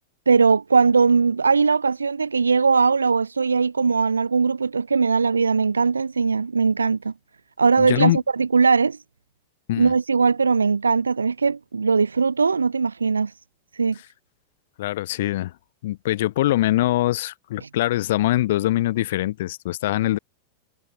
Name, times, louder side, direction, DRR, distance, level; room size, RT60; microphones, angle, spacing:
voice 1, 0.3-7.1 7.6-9.0 9.8-13.3 13.8-14.0, right 5 dB, 75° right, 1.7 m, -20 dB
voice 2, 7.8-8.2 9.7-9.9 14.8-15.5 15.8-20.2, left 15 dB, 55° left, 0.6 m, -23 dB
figure-of-eight pair, 90°, 0 cm